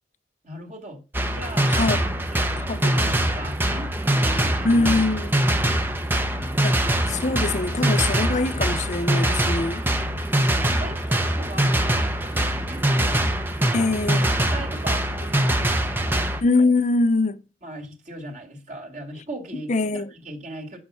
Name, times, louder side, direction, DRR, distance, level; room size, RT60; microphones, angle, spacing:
voice 1, 0.4-1.0 1.3-1.8 2.3-2.5 2.9-5.0 9.5-13.3 14.3-16.3 17.6-20.8, right 1 dB, 45° right, 2.6 m, -39 dB
sound 1, 1.1-16.4, right 1 dB, 10° right, 0.9 m, -23 dB
voice 2, 1.7-2.0 2.7-3.1 4.6-5.3 6.6-9.8 13.7-14.3 16.4-17.4 19.7-20.1, left 3 dB, 40° left, 0.6 m, -23 dB
9.7 x 6.7 x 5.7 m
head